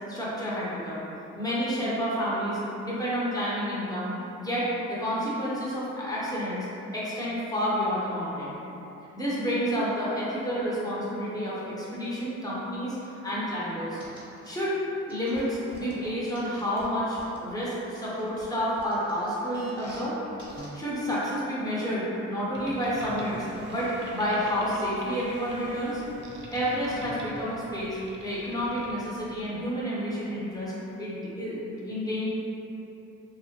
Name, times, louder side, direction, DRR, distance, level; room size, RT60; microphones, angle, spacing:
voice 1, 0.1-1.0 1.3-6.7 6.9-8.6 9.1-14.0 14.4-14.7 15.1-20.2 20.7-23.4 23.7-26.0 26.5-30.7 31.0-32.3, equal, 10° left, -8 dB, 0.8 m, -30 dB
sound 1, 13.9-14.5 15.1-17.5 17.9-20.1 20.4-20.7 21.1-21.2, right 1 dB, 15° right, 0.9 m, -46 dB
Boat Water vehicle, 22.5-29.4, right 1 dB, 40° right, 0.4 m, -44 dB
2.9 x 2.0 x 2.8 m, 3.0 s
cardioid pair, 90°, 30 cm